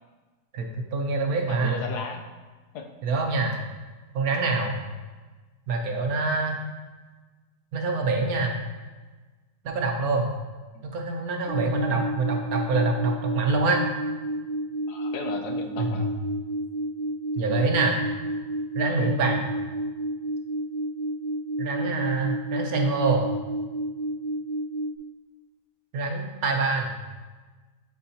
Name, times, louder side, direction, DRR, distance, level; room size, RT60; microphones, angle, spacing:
voice 1, 0.5-1.8 3.0-3.6 4.1-4.7 5.7-6.6 7.7-8.6 9.6-10.3 10.9-13.8 15.8-16.0 17.4-18.0 18.7-19.4 21.6-23.2 25.9-26.9, right 3 dB, 65° right, 2 dB, 1.2 m, -25 dB
voice 2, 1.5-2.2 2.7-2.9 10.7-10.9 11.9-12.1 14.9-16.1, left 4 dB, 75° left, 3 dB, 1.2 m, -36 dB
sound 1, 11.5-25.0, right 1 dB, 55° left, 2.0 m, -31 dB
9.6 x 4.7 x 2.8 m, 1.3 s
omnidirectional pair, 1.8 m